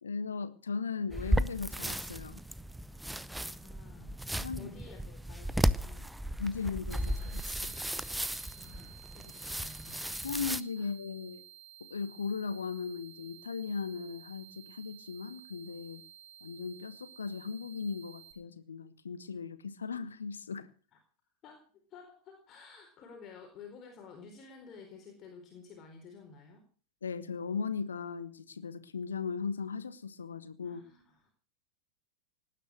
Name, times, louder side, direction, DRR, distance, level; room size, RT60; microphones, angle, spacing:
voice 1, 0.0-2.4 4.4-4.7 6.4-7.7 10.2-11.4 11.9-16.0 16.4-20.7 27.0-30.8, left 5 dB, 70° left, 1.4 m, -37 dB
sound 1, 1.1-10.6, equal, 5° right, 0.7 m, -35 dB
voice 2, 3.0-4.2 4.6-6.1 8.5-10.2 10.8-10.9 20.9-21.0 21.4-26.6 30.6-31.3, left 4 dB, 30° left, 4.3 m, -52 dB
sound 2, 6.9-18.3, right 11 dB, 40° right, 4.3 m, -54 dB
19.0 x 10.0 x 6.4 m
figure-of-eight pair, 90°, 0 cm